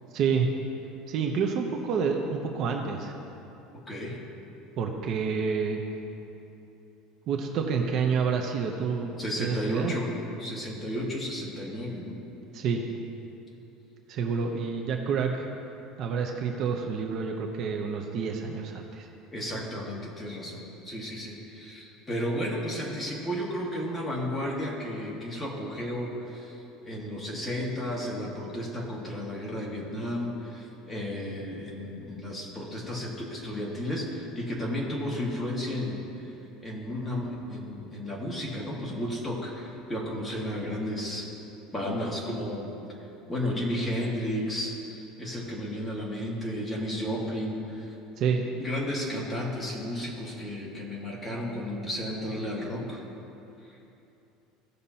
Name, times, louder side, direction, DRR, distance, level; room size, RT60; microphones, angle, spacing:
voice 1, 0.1-0.5 1.1-3.1 4.8-5.8 7.3-9.1 9.4-9.9 12.5-12.8 14.1-15.4 16.0-19.1 48.2-48.4, right 6 dB, 45° right, 2 dB, 0.8 m, -28 dB
voice 2, 3.9-4.2 9.2-10.1 10.4-12.1 19.3-26.5 26.8-36.3 36.6-41.3 41.7-42.7 43.3-47.9 48.6-53.0, equal, 10° left, -4 dB, 1.7 m, -33 dB
16.5 x 6.6 x 2.8 m, 2.9 s
cardioid pair, 150°, 0 cm